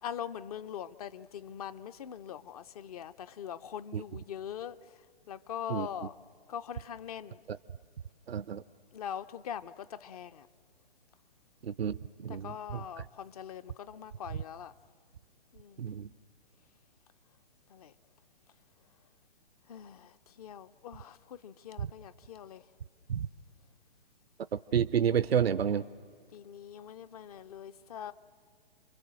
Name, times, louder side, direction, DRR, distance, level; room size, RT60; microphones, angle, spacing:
voice 1, 0.0-4.8 5.3-6.2 6.5-7.4 8.9-10.5 12.3-14.7 15.5-15.9 17.7-17.9 19.7-22.6 26.3-28.1, left 9 dB, 40° left, 13 dB, 0.6 m, -42 dB
voice 2, 8.3-8.6 11.6-12.0 12.2-12.8 15.8-16.1 23.1-23.3 24.5-25.8, right 8 dB, 80° right, 15 dB, 0.6 m, -30 dB
29.5 x 23.0 x 7.5 m, 2.1 s
figure-of-eight pair, 130°, 30 cm